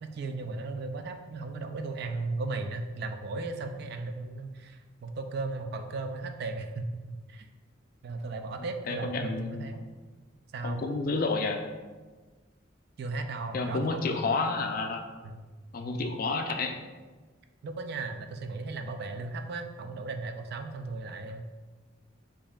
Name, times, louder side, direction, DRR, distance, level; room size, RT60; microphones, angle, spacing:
voice 1, 0.0-7.5 8.0-9.8 10.5-10.8 13.0-14.2 15.2-15.4 17.6-21.5, right 3 dB, 55° right, 6 dB, 0.3 m, -36 dB
voice 2, 8.9-9.7 10.6-11.6 13.5-15.0 15.7-16.7, left 3 dB, 45° left, 5 dB, 0.3 m, -30 dB
5.1 x 2.7 x 2.3 m, 1.3 s
head